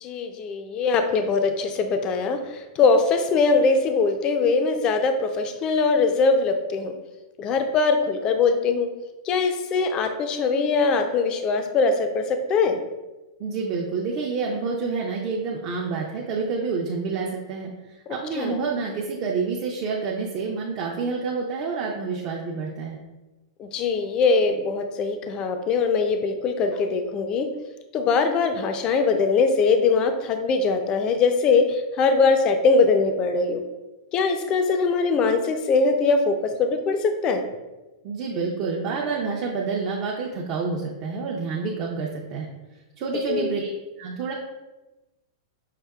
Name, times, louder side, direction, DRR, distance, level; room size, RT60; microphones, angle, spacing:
voice 1, 0.0-6.9 7.4-8.9 9.2-12.8 18.1-18.6 23.6-27.5 27.9-33.6 34.1-37.5 43.3-43.5, left 4 dB, 30° left, 7 dB, 0.4 m, -22 dB
voice 2, 13.4-17.7 18.1-23.0 38.0-42.5 43.0-43.7 44.0-44.3, right 4 dB, 40° right, -2 dB, 0.5 m, -28 dB
5.7 x 2.7 x 2.3 m, 1.1 s
hypercardioid pair, 135°, 3 cm